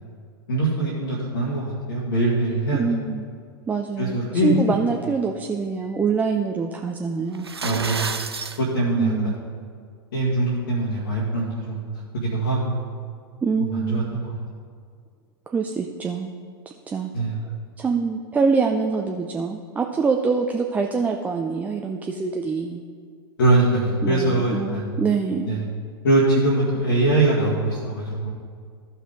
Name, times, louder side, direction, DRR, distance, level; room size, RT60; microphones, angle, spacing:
voice 1, 0.5-2.8 4.0-4.5 7.6-8.2 8.6-9.4 10.1-11.8 12.1-12.8 13.6-14.4 17.1-17.4 23.4-25.0 25.4-25.6 26.0-28.3, right 2 dB, 60° left, -6 dB, 1.9 m, -22 dB
voice 2, 2.7-3.3 3.7-7.5 9.0-9.4 13.4-14.2 15.5-16.3 16.9-17.1 17.8-22.8 24.0-25.5, right 5 dB, 10° right, 3 dB, 0.4 m, -25 dB
sound 1, 7.3-8.6, right 5 dB, 80° right, 0.6 m, -29 dB
14.0 x 5.7 x 3.6 m, 2.1 s
figure-of-eight pair, 95°, 13 cm